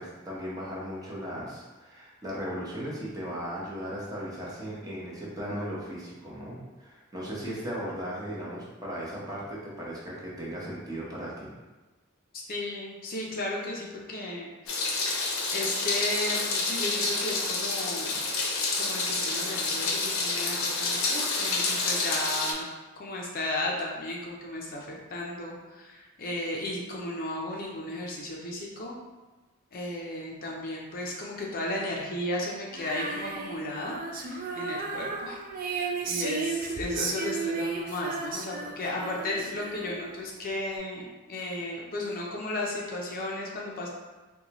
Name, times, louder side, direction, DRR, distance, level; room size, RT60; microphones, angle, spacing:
voice 1, 0.0-11.5, equal, 20° right, -6 dB, 0.8 m, -37 dB
voice 2, 12.5-14.9 15.5-18.3 18.7-22.6 23.0-29.0 29.7-43.9, left 1 dB, 45° left, -2 dB, 0.5 m, -34 dB
Meow, 14.7-22.5, left 3 dB, 85° left, 0.6 m, -28 dB
Female singing, 32.7-40.2, right 4 dB, 45° right, 0.4 m, -34 dB
3.9 x 2.2 x 2.9 m, 1.2 s
head